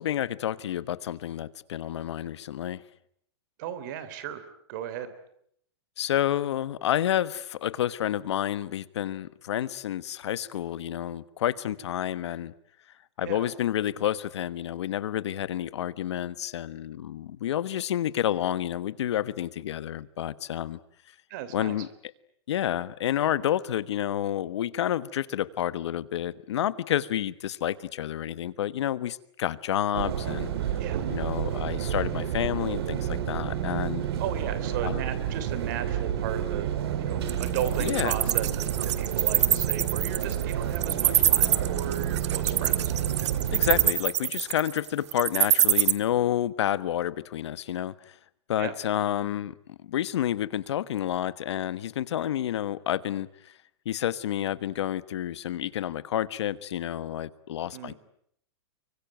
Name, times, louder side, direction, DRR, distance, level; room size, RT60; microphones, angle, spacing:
voice 1, 0.0-2.8 6.0-12.5 13.2-20.8 21.5-21.9 22.5-30.5 31.1-34.0 34.8-35.0 37.8-38.1 43.5-47.9 48.5-49.5 49.8-53.3 53.8-57.9, left 11 dB, 75° left, 16 dB, 1.3 m, -29 dB
voice 2, 3.6-4.4 4.7-5.1 13.2-13.5 21.3-21.8 30.8-31.1 34.2-36.7 37.0-42.9 48.6-48.7 57.7-57.9, right 10 dB, 40° right, 13 dB, 3.3 m, -36 dB
sound 1, 29.9-43.9, right 9 dB, 60° right, 3.2 m, -30 dB
Wild animals, 37.3-45.9, right 11 dB, 85° right, 1.6 m, -24 dB
25.0 x 24.0 x 9.2 m, 0.70 s
supercardioid pair, 175°, 15 cm